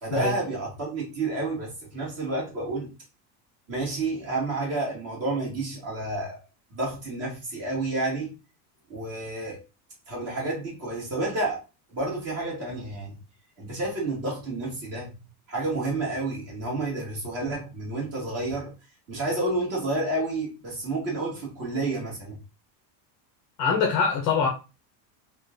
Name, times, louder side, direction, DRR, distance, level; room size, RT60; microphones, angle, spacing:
voice 1, 0.0-2.9 3.7-6.4 6.7-8.3 8.9-9.6 10.1-11.6 11.9-13.2 13.6-15.2 15.5-18.7 19.1-22.4, right 2 dB, 30° right, 1.8 m, -30 dB
voice 2, 23.6-24.5, left 6 dB, 35° left, 0.7 m, -23 dB
3.7 x 2.5 x 3.5 m
cardioid pair, 180°, 50 cm